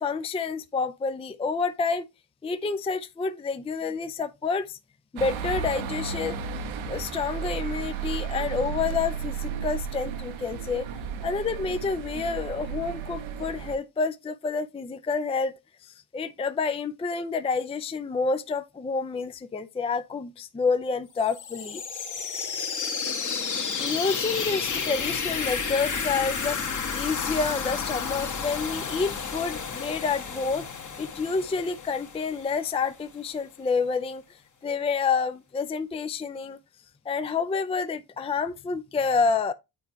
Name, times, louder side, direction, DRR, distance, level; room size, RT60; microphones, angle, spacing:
voice 1, 0.0-2.1 2.4-4.8 5.1-6.4 6.9-10.9 11.2-15.5 15.8-22.2 23.1-23.2 23.8-30.7 31.0-34.2 34.6-36.6 37.1-39.5, left 5 dB, 15° left, 0.5 m, -28 dB
sound 1, 5.2-13.8, right 7 dB, 70° right, 0.9 m, -33 dB
sound 2, 21.2-32.9, left 5 dB, 35° left, 1.3 m, -31 dB
9.0 x 4.4 x 2.7 m
supercardioid pair, 70°, 49 cm